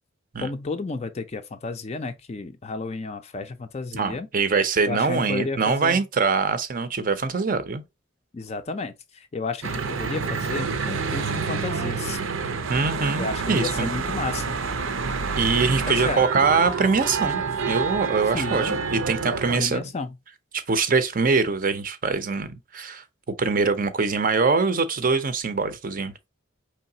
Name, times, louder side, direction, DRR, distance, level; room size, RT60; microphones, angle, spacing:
voice 1, 0.4-4.3 4.9-6.0 8.3-8.9 9.3-12.2 13.2-14.5 16.0-16.2 18.3-18.8 19.6-20.2, left 3 dB, 30° left, 0.4 m, -32 dB
voice 2, 3.9-7.8 12.7-13.9 15.4-19.8 20.5-23.0 23.4-26.1, right 4 dB, 40° right, 0.5 m, -23 dB
Church bell / Traffic noise roadway noise, 9.6-19.6, right 5 dB, 85° right, 0.6 m, -28 dB
4.7 x 3.2 x 2.7 m
head